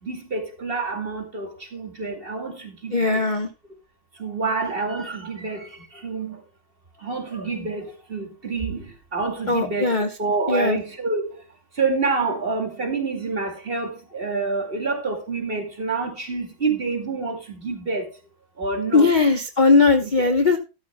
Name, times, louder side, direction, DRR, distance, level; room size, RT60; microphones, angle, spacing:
voice 1, 0.0-3.2 4.1-6.4 7.0-11.4 11.7-18.2 18.6-19.1 20.0-20.3, right 4 dB, 30° right, 2.3 m, -28 dB
voice 2, 2.9-3.5 9.5-10.1 10.5-10.8 18.9-20.6, left 3 dB, 35° left, 0.7 m, -18 dB
13.0 x 12.5 x 2.2 m
omnidirectional pair, 2.2 m